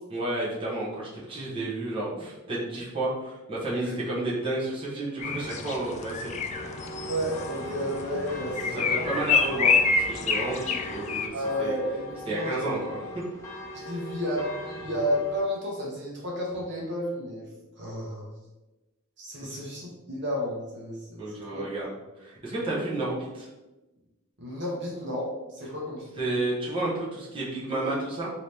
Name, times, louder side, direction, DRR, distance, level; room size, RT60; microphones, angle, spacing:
voice 1, 0.1-6.6 8.6-11.3 11.6-11.7 12.3-13.2 19.5-19.6 21.2-21.9 22.2-23.5 26.2-28.3, right 2 dB, 25° right, -7 dB, 1.0 m, -31 dB
sound 1, 5.2-11.3, left 5 dB, 30° left, 0.3 m, -28 dB
sound 2, 6.5-15.4, equal, 15° left, 0.7 m, -40 dB
voice 2, 7.1-9.1 11.3-12.7 13.7-17.5 17.8-18.3 19.2-21.6 24.4-26.0, equal, 55° right, -3 dB, 1.0 m, -32 dB
3.8 x 2.8 x 3.3 m, 1.1 s
head